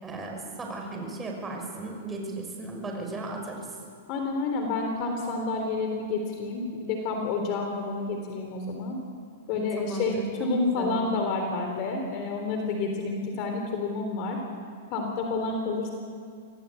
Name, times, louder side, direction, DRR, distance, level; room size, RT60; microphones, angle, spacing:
voice 1, 0.0-3.8 9.5-11.2, right 2 dB, 15° right, 1 dB, 5.7 m, -36 dB
voice 2, 4.1-9.0 9.5-10.1 10.4-14.4 14.9-15.9, left 3 dB, 40° left, 3 dB, 3.6 m, -29 dB
26.0 x 17.5 x 8.5 m, 2.2 s
hypercardioid pair, 135°, 0 cm